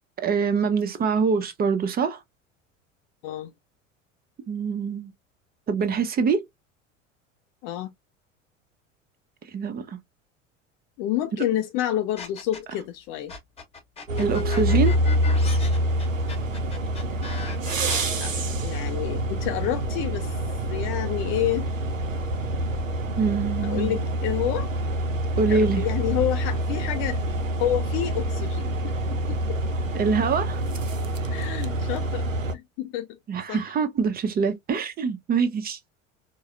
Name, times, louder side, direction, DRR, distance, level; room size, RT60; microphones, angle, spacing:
voice 1, 0.2-2.2 4.5-5.1 5.7-6.4 9.5-10.0 14.2-15.0 23.2-24.0 25.4-25.8 29.9-30.6 33.3-35.8, right 5 dB, 25° right, 0.7 m, -24 dB
voice 2, 7.6-7.9 11.0-13.3 18.2-18.3 18.6-20.4 20.7-21.7 23.6-24.7 25.5-29.6 31.3-33.2 33.5-33.7, left 12 dB, 35° left, 0.4 m, -29 dB
sound 1, 12.2-12.8 13.3-18.0, left 4 dB, 15° left, 1.2 m, -38 dB
sound 2, 14.1-32.5, right 1 dB, 85° right, 0.6 m, -26 dB
4.5 x 2.1 x 2.6 m
figure-of-eight pair, 75°, 38 cm